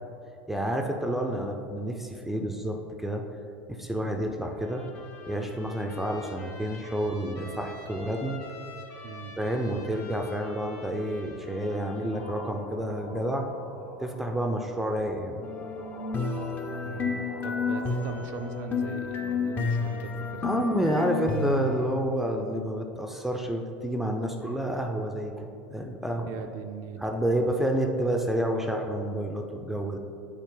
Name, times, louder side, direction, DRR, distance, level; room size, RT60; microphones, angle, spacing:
voice 1, 0.5-3.2 3.7-4.8 5.3-8.4 9.4-13.5 14.0-15.4 15.7-16.0 20.4-26.3 27.0-30.0, right 1 dB, 5° right, 3 dB, 0.5 m, -29 dB
Trumpet, 4.4-12.6, left 3 dB, 50° left, 1.2 m, -47 dB
sound 1, 12.1-21.2, left 1 dB, 75° left, 1.5 m, -47 dB
sound 2, 15.4-21.9, left 4 dB, 30° left, 0.8 m, -31 dB
voice 2, 16.8-20.4 26.3-27.0, right 6 dB, 60° right, 5 dB, 0.5 m, -40 dB
8.2 x 4.2 x 3.8 m, 2.6 s
supercardioid pair, 115°, 6 cm